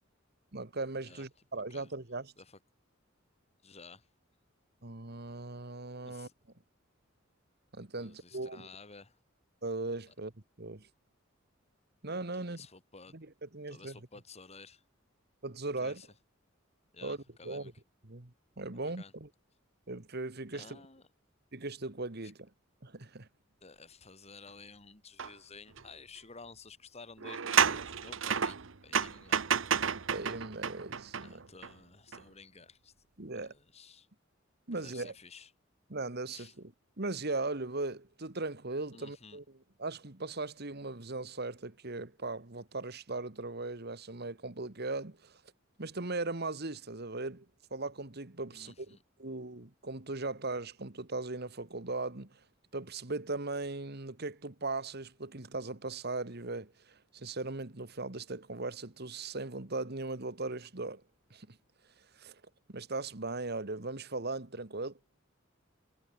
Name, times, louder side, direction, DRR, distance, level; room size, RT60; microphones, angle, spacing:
voice 1, 0.5-2.3 4.8-6.3 7.7-8.7 9.6-10.3 10.6-10.9 12.0-12.6 13.1-14.0 15.4-16.0 17.0-17.2 17.4-17.7 18.0-19.3 19.9-20.8 21.5-22.5 22.8-23.3 30.1-31.4 33.2-33.5 34.7-35.1 35.9-36.7 37.0-39.4 39.8-45.4 45.8-47.5 47.7-52.4 52.7-61.0 61.3-61.6 62.1-62.4 62.7-65.0, right 3 dB, 55° right, 1.9 m, -38 dB
voice 2, 3.6-4.1 6.0-6.3 8.0-9.2 12.3-13.1 13.7-14.8 15.8-16.1 16.9-17.7 18.7-19.1 20.5-21.0 22.2-22.3 23.6-29.5 31.2-32.9 33.3-34.1 34.7-35.5 36.3-36.5 38.9-39.4 48.5-49.0, left 4 dB, 35° left, 2.6 m, -53 dB
sound 1, 25.2-25.3 25.8-25.9 27.2-31.7 32.1-32.2, right 7 dB, 75° right, 1.0 m, -31 dB
head